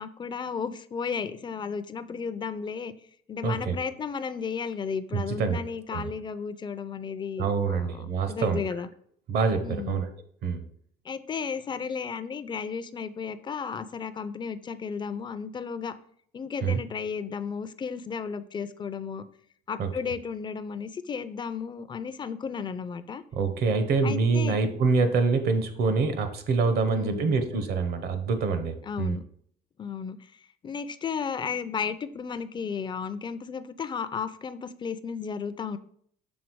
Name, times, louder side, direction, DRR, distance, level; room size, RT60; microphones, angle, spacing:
voice 1, 0.0-2.9 3.3-8.9 9.6-10.0 11.0-16.0 16.3-19.2 19.7-23.2 24.0-24.6 26.8-27.4 28.8-29.2 29.8-35.8, left 6 dB, 25° left, 13 dB, 0.5 m, -34 dB
voice 2, 3.4-3.8 5.1-5.6 5.9-6.1 7.4-8.6 9.3-10.1 10.4-10.6 16.6-16.8 19.8-19.9 23.3-29.2, right 4 dB, 70° right, 8 dB, 1.0 m, -26 dB
6.3 x 3.8 x 4.6 m, 0.63 s
cardioid pair, 110°, 17 cm